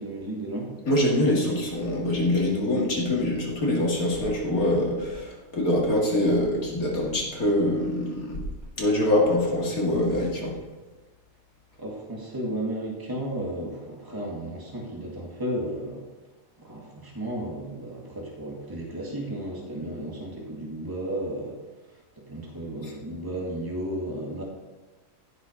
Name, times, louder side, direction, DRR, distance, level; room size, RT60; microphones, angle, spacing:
voice 1, 0.0-0.7 11.8-16.0 16.6-21.5 22.3-24.4, right 1 dB, 15° right, -2 dB, 1.9 m, -33 dB
voice 2, 0.9-8.4 8.8-10.6, left 1 dB, 80° left, -2 dB, 2.7 m, -24 dB
15.5 x 6.1 x 5.2 m, 1.2 s
omnidirectional pair, 1.5 m